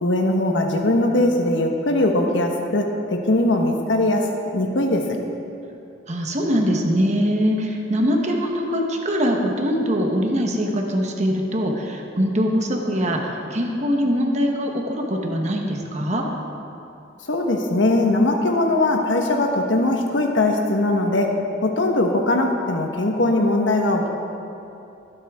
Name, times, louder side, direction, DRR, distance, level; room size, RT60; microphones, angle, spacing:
voice 1, 0.0-5.2 17.2-24.1, left 2 dB, 90° left, 2 dB, 1.3 m, -20 dB
voice 2, 6.1-16.2, equal, 40° right, 1 dB, 1.1 m, -22 dB
22.0 x 8.4 x 3.6 m, 2.7 s
head